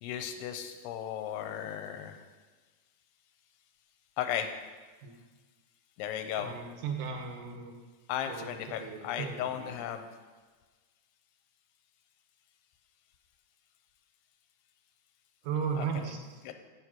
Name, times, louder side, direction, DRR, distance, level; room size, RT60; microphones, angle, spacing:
voice 1, 0.0-2.2 4.2-4.5 6.0-6.5 8.1-10.0 15.8-16.1 16.4-16.5, left 10 dB, 85° left, 6 dB, 2.7 m, -35 dB
voice 2, 6.4-7.8 8.3-9.8 15.4-16.2, right 6 dB, 80° right, 3 dB, 1.8 m, -36 dB
8.1 x 7.4 x 6.0 m, 1.4 s
omnidirectional pair, 4.8 m